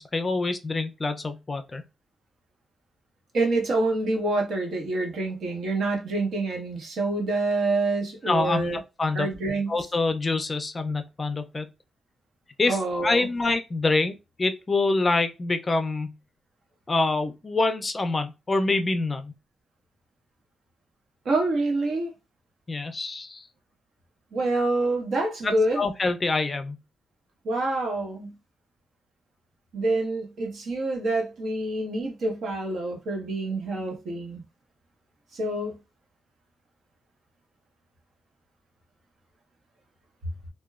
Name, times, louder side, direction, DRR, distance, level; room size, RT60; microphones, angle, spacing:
voice 1, 0.0-1.8 8.2-9.3 9.7-11.7 12.6-16.1 16.9-19.3 22.7-23.5 25.4-26.8, left 3 dB, 30° left, 0.4 m, -26 dB
voice 2, 3.3-8.8 9.1-9.7 12.7-13.3 21.2-22.1 24.3-25.8 27.4-28.3 29.7-34.4 35.3-35.8, right 2 dB, 70° right, 1.0 m, -27 dB
2.9 x 2.1 x 2.3 m
cardioid pair, 125°, 0 cm